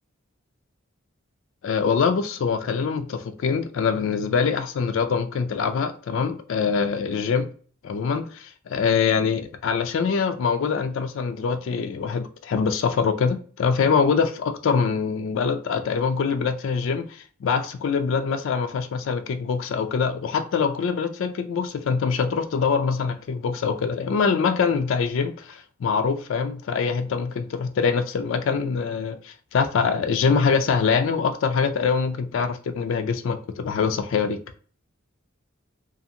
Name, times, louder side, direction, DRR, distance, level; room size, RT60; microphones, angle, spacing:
voice 1, 1.6-7.5 7.8-34.4, left 5 dB, 65° left, 0.3 m, -24 dB
2.6 x 2.5 x 2.7 m
head